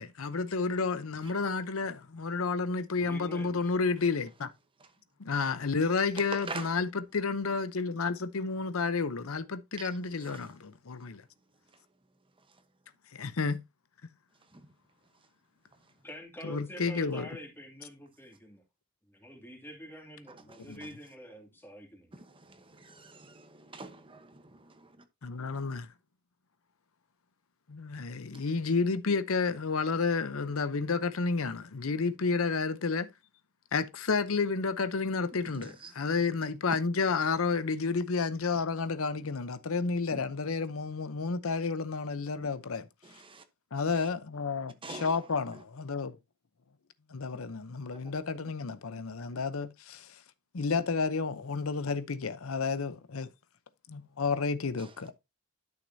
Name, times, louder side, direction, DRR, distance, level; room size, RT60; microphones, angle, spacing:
voice 1, 0.0-4.5 5.2-11.2 13.1-13.6 16.4-17.3 20.7-20.8 25.2-25.9 27.7-33.1 33.7-42.9 43.7-46.2 47.1-50.2 50.5-53.3 53.9-55.1, left 4 dB, 90° left, 0.8 m, -31 dB
voice 2, 3.0-3.7 16.0-18.6 19.0-22.2, equal, 10° left, 2.4 m, -47 dB
voice 3, 6.4-6.8 9.8-9.9 10.2-10.4 14.5-14.6 22.1-24.9 35.5-35.9 40.1-40.2 43.0-43.4 43.9-44.1 44.8-45.1 48.0-48.1 54.8-54.9, right 3 dB, 25° right, 1.0 m, -45 dB
11.5 x 6.6 x 2.7 m
head